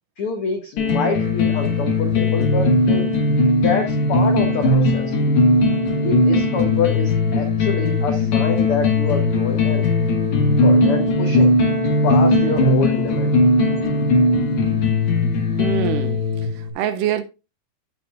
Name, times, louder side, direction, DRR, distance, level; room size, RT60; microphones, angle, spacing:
voice 1, 0.2-3.1 3.5-5.1 6.0-9.9 10.6-11.5 12.0-13.3, left 4 dB, 80° left, 1.2 m, -26 dB
sound 1, 0.8-16.7, left 2 dB, 55° left, 2.6 m, -18 dB
voice 2, 15.6-16.2 16.6-17.2, right 10 dB, 80° right, 2.1 m, -24 dB
14.5 x 6.1 x 2.5 m
omnidirectional pair, 4.2 m